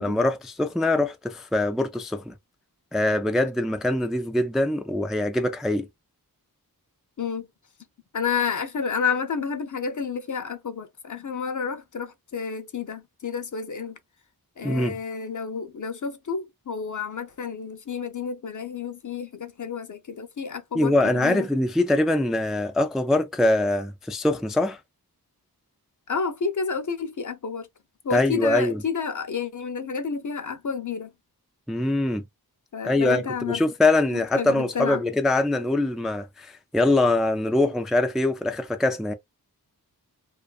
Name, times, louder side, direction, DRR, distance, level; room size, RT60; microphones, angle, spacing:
voice 1, 0.0-2.3 2.9-5.9 14.6-15.0 20.7-24.8 28.1-28.8 31.7-32.2 32.8-39.1, left 2 dB, ahead, 0.3 m, -23 dB
voice 2, 8.1-14.0 14.6-21.5 26.1-27.7 28.0-31.1 32.7-33.6 34.4-35.0, left 5 dB, 50° left, 0.6 m, -30 dB
2.5 x 2.4 x 2.3 m
wide cardioid pair, 60°, 38 cm